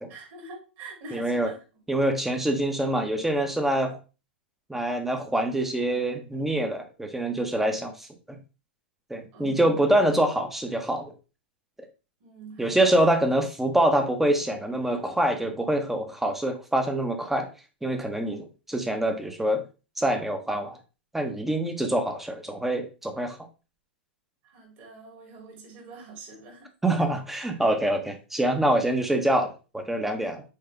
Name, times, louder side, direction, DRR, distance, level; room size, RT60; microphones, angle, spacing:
voice 1, 0.1-1.6 9.3-9.8 12.2-13.0 24.4-26.7 30.1-30.3, right 3 dB, 45° right, 0 dB, 3.3 m, -45 dB
voice 2, 1.1-1.5 1.9-4.0 4.7-8.4 9.1-11.1 12.6-17.5 17.8-19.6 20.0-20.8 21.1-23.4 26.8-30.4, right 1 dB, 5° right, 6 dB, 1.1 m, -25 dB
6.6 x 4.7 x 3.5 m, 0.32 s
figure-of-eight pair, 100°, 6 cm